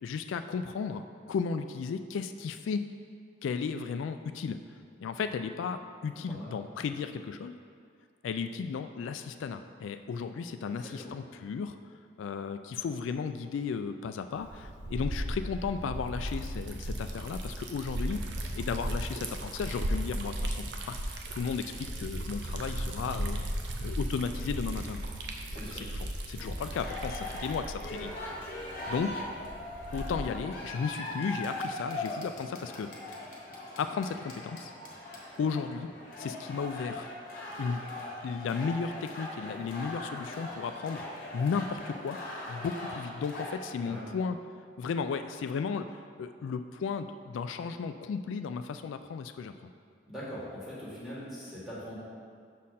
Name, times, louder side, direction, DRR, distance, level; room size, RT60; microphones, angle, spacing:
voice 1, 0.0-2.8 3.4-4.6 5.0-7.5 8.2-11.8 12.2-18.2 18.6-23.4 23.8-25.0 26.0-28.1 28.9-29.2 29.9-32.9 33.8-34.7 35.4-35.9 36.2-37.1 37.6-37.8 38.2-41.1 41.3-42.2 42.5-44.4 44.8-49.5, left 5 dB, 90° left, 8 dB, 0.3 m, -34 dB
voice 2, 6.1-6.5 10.6-11.1 25.5-25.9 43.8-44.1 50.0-51.9, equal, ahead, -9 dB, 1.6 m, -42 dB
Liquid, 14.4-30.5, right 1 dB, 70° right, 0.7 m, -36 dB
sound 1, 26.4-43.5, left 2 dB, 45° left, 1.1 m, -40 dB
6.3 x 4.2 x 5.6 m, 2.2 s
head